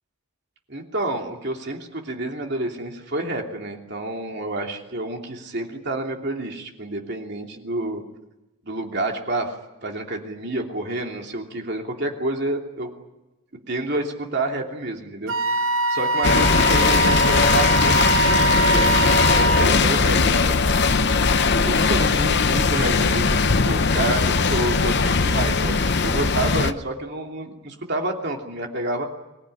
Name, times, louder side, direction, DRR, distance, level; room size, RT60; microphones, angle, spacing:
voice 1, 0.7-8.0 8.6-9.5 9.8-12.9 13.7-21.1 21.7-29.1, right 2 dB, 50° right, 2 dB, 2.9 m, -29 dB
Wind instrument woodwind instrument, 15.3-19.7, right 2 dB, 65° right, 0.8 m, -22 dB
sound 1, 16.2-26.7, left 4 dB, 50° left, 0.8 m, -19 dB
25.0 x 19.5 x 9.9 m, 1.0 s
head